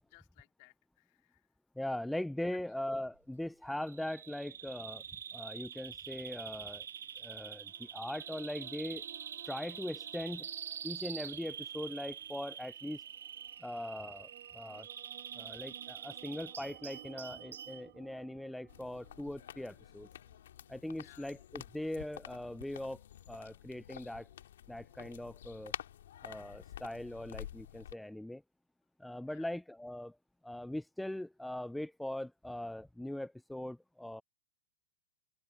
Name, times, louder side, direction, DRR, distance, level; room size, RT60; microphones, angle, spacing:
voice 1, 0.0-1.5 2.5-2.6 21.0-21.3 29.3-29.5, left 26 dB, 50° left, 3.4 m, -62 dB
voice 2, 1.8-5.0 5.3-6.9 7.2-9.0 9.4-10.5 10.8-13.0 13.6-14.9 15.4-20.1 20.7-23.0 23.3-24.3 24.7-25.7 26.2-28.4 29.0-30.2 30.4-34.2, left 1 dB, 5° left, 0.4 m, -41 dB
Bird vocalization bird call bird song, 3.8-17.8, right 8 dB, 85° right, 0.6 m, -46 dB
sound 1, 6.8-20.9, right 18 dB, 60° right, 5.4 m, -59 dB
sound 2, 18.7-27.9, left 11 dB, 75° left, 2.2 m, -49 dB
open air
hypercardioid pair, 130°, 0 cm